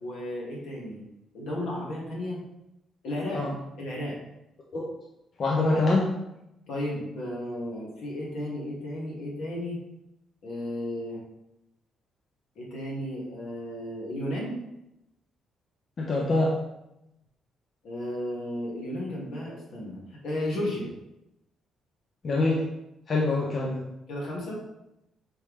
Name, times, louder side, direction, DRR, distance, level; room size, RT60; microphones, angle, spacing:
voice 1, 0.0-1.0 1.3-2.4 3.0-3.5 3.8-4.2 5.7-5.8 6.7-9.8 10.4-11.2 12.5-14.5 17.8-20.0 20.2-20.9 24.1-24.6, left 1 dB, 75° left, -3 dB, 1.6 m, -33 dB
voice 2, 5.4-6.1 16.0-16.6 22.2-22.7 23.1-23.8, left 2 dB, 50° left, -3 dB, 0.7 m, -24 dB
4.4 x 3.4 x 3.1 m, 0.88 s
cardioid pair, 90°, 0 cm